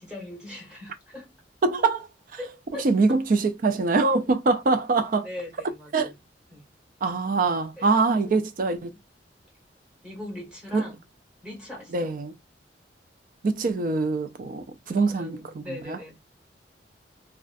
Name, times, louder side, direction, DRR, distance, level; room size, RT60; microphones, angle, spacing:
voice 1, 0.0-1.3 2.4-2.9 5.1-6.2 6.5-6.6 7.8-8.4 10.0-11.0 11.4-12.1 14.6-16.2, left 1 dB, 5° right, 1.3 m, -40 dB
voice 2, 1.6-2.1 2.8-5.3 5.9-6.1 7.0-8.9 10.7-10.8 11.9-12.3 13.4-16.0, right 3 dB, 45° right, 0.4 m, -24 dB
2.4 x 2.3 x 2.4 m
head